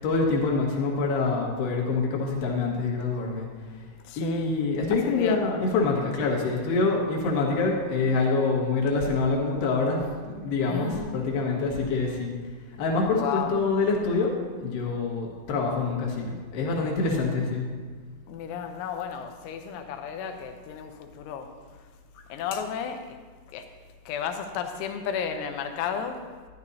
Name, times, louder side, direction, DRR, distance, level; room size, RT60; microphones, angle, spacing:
voice 1, 0.0-3.5 4.2-12.3 12.8-14.3 14.6-17.7, left 3 dB, 65° left, -2 dB, 3.2 m, -26 dB
voice 2, 4.0-4.5 5.0-5.4 10.7-11.2 13.1-13.5 18.3-21.9 22.3-23.2 23.5-23.7 24.1-26.3, left 7 dB, 85° left, 6 dB, 3.2 m, -33 dB
13.0 x 11.0 x 2.8 m, 1.5 s
omnidirectional pair, 5.4 m